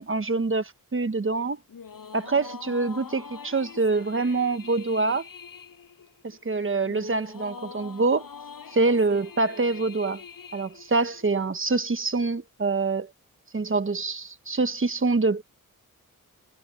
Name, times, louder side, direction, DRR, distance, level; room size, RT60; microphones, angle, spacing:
voice 1, 0.0-1.6 2.1-5.2 6.2-8.3 8.7-10.2 10.5-13.1 13.5-15.4, right 3 dB, 35° right, 1.3 m, -25 dB
sound 1, 1.7-11.4, left 6 dB, 75° left, 5.9 m, -44 dB
wide cardioid pair, 100°, 34 cm